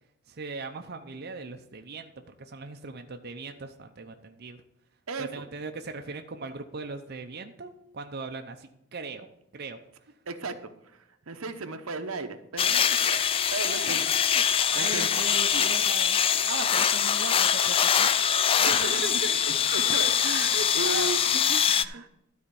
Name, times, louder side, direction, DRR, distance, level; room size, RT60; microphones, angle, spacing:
voice 1, 0.3-4.6 5.2-9.3 9.5-9.8 13.6-19.4 20.5-21.1 21.5-21.6 21.9-22.0, right 3 dB, 50° right, 5 dB, 0.6 m, -39 dB
voice 2, 5.1-5.4 10.3-10.6 10.9-14.0 14.7-15.1 15.5-15.7 18.6-19.0 19.5-21.2 21.7-22.1, right 3 dB, 85° right, 8 dB, 0.9 m, -35 dB
sound 1, 12.6-21.8, left 8 dB, 25° left, 0.3 m, -24 dB
12.5 x 4.3 x 6.9 m, 0.83 s
head